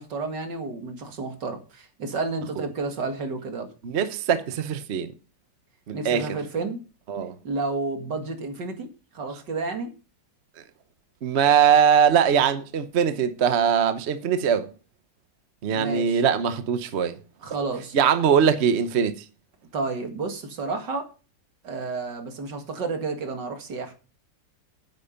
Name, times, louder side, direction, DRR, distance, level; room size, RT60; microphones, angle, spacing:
voice 1, 0.0-3.7 5.9-6.8 7.4-8.9 9.1-9.9 15.7-16.2 17.4-18.0 19.7-21.1 21.6-23.9, right 3 dB, 70° right, 2.6 m, -31 dB
voice 2, 3.8-5.1 5.9-6.4 7.1-7.3 11.2-14.7 15.6-17.2 17.9-19.2, right 7 dB, 50° right, 0.9 m, -21 dB
9.5 x 8.9 x 5.7 m
omnidirectional pair, 2.0 m